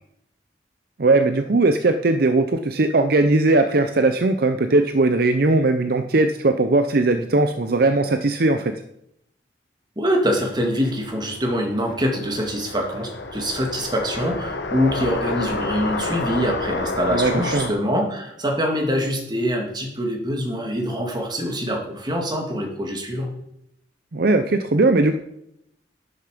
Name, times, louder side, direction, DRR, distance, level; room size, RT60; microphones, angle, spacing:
voice 1, 1.0-8.8 17.1-17.7 24.1-25.2, right 2 dB, 55° right, 8 dB, 0.6 m, -19 dB
voice 2, 10.0-23.3, equal, 25° right, 1 dB, 2.3 m, -24 dB
sound 1, 10.9-17.7, left 2 dB, 70° left, 1.5 m, -29 dB
11.5 x 9.4 x 5.1 m, 0.79 s
head